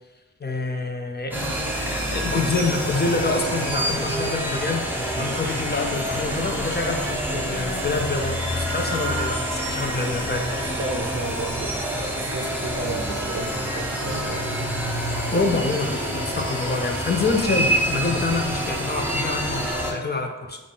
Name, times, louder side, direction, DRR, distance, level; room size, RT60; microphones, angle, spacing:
voice 1, 0.4-10.6 15.3-20.6, left 3 dB, 35° left, 4 dB, 0.4 m, -27 dB
sound 1, 1.3-19.9, equal, 5° right, 0.7 m, -27 dB
voice 2, 10.5-14.4, right 3 dB, 55° right, 1 dB, 0.5 m, -33 dB
3.6 x 2.4 x 3.8 m, 1.2 s
wide cardioid pair, 75°, 29 cm